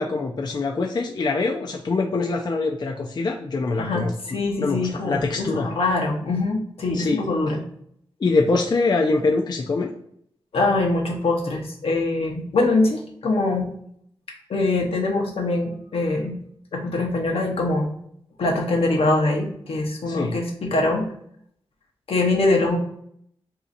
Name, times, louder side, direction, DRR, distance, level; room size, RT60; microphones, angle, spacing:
voice 1, 0.0-5.7 6.9-7.2 8.2-9.9 20.1-20.4, left 3 dB, 45° left, 1 dB, 0.4 m, -24 dB
voice 2, 3.8-7.6 10.5-13.7 14.5-16.4 16.7-17.9 18.4-21.1 22.1-22.8, left 2 dB, 75° left, 1 dB, 0.8 m, -23 dB
2.7 x 2.4 x 4.0 m, 0.69 s
cardioid pair, 45°, 10 cm